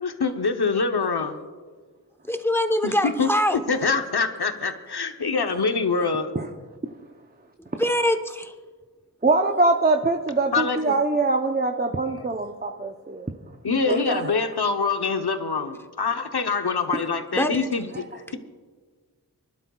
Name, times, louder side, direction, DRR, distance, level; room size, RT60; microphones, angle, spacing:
voice 1, 0.0-1.4 2.8-2.9 3.2-3.3 3.7-6.3 10.5-10.9 12.2-12.3 13.6-17.9, left 4 dB, 80° left, 6 dB, 0.9 m, -25 dB
voice 2, 2.3-3.6 7.8-8.2 17.3-17.7, left 1 dB, 5° left, 5 dB, 1.0 m, -23 dB
voice 3, 9.2-13.3 13.9-14.3, right 3 dB, 25° right, 4 dB, 0.7 m, -23 dB
29.0 x 11.5 x 2.3 m, 1.5 s
wide cardioid pair, 40°, 38 cm